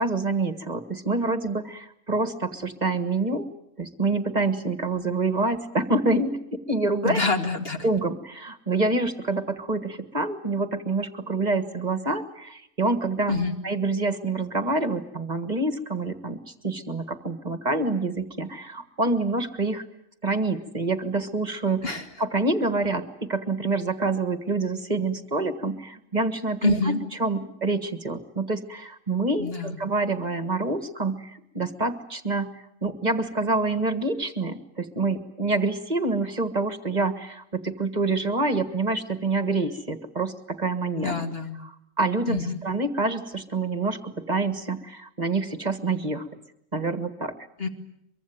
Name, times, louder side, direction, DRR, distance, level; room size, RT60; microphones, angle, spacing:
voice 1, 0.0-3.5 3.8-7.2 7.8-13.4 13.6-19.8 20.2-21.8 22.2-26.9 27.2-41.2 41.6-41.7 42.0-46.2 46.7-47.4, right 3 dB, 30° right, 9 dB, 1.6 m, -27 dB
voice 2, 7.0-7.9 13.3-13.6 21.8-22.0 26.6-27.0 29.4-29.8 41.0-41.6 42.3-42.6 47.6-47.7, left 3 dB, 45° left, 4 dB, 2.6 m, -26 dB
24.0 x 23.5 x 9.3 m, 0.80 s
omnidirectional pair, 1.4 m